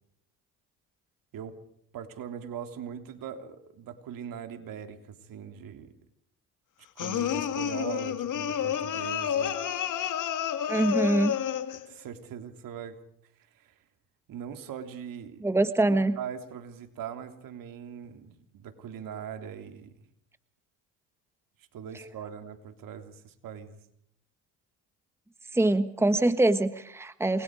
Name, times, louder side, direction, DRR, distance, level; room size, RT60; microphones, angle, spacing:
voice 1, 1.9-6.0 7.0-9.6 11.7-13.0 13.4-13.8 14.3-15.5 15.9-20.0 21.6-23.8, right 8 dB, 65° right, 7 dB, 3.5 m, -41 dB
sound 1, 7.0-11.9, left 9 dB, 55° left, 2.5 m, -30 dB
voice 2, 10.7-11.4 15.4-16.2 25.5-27.4, right 2 dB, 5° right, 11 dB, 1.3 m, -24 dB
28.5 x 22.5 x 4.9 m, 0.68 s
supercardioid pair, 85°, 36 cm